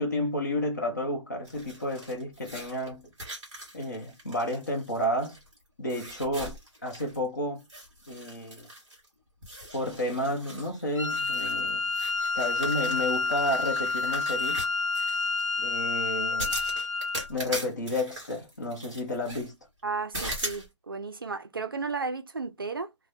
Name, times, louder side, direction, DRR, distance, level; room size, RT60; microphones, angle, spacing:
voice 1, 0.0-3.1 3.7-5.4 5.8-7.7 8.1-8.7 9.7-11.9 12.3-14.7 15.6-16.6 17.3-19.6, left 1 dB, 35° left, 0.8 m, -31 dB
sound 1, 1.5-5.6 5.9-7.3 7.6-9.1 9.4-15.4 16.4-19.5 20.1-20.7, right 1 dB, 5° right, 1.0 m, -40 dB
Wind instrument woodwind instrument, 11.0-17.3, left 3 dB, 80° left, 0.6 m, -29 dB
voice 2, 19.8-22.9, right 4 dB, 45° right, 0.4 m, -34 dB
2.6 x 2.1 x 3.3 m
hypercardioid pair, 180°, 16 cm